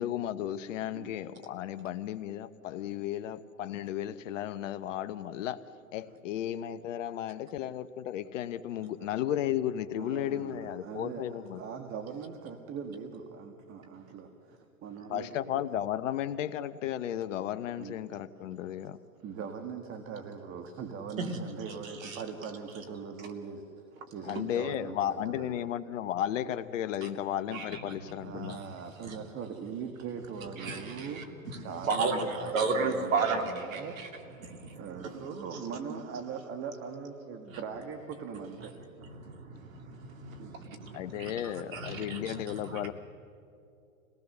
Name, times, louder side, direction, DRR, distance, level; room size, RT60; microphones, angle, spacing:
voice 1, 0.0-5.6 5.9-11.6 15.1-19.0 24.2-28.6 40.9-42.9, left 11 dB, 65° left, 12 dB, 1.0 m, -34 dB
voice 2, 10.0-15.6 17.8-18.2 19.2-23.7 24.1-25.6 28.2-38.8 40.4-40.8, right 6 dB, 30° right, 6 dB, 1.8 m, -41 dB
voice 3, 30.6-31.2 31.8-34.1 34.4-35.3 35.5-35.6 35.9-36.0 37.5-37.6 39.0-41.3 41.7-42.3 42.7-42.9, right 4 dB, 75° right, 5 dB, 2.9 m, -34 dB
26.5 x 18.5 x 6.8 m, 2.6 s
hypercardioid pair, 120°, 41 cm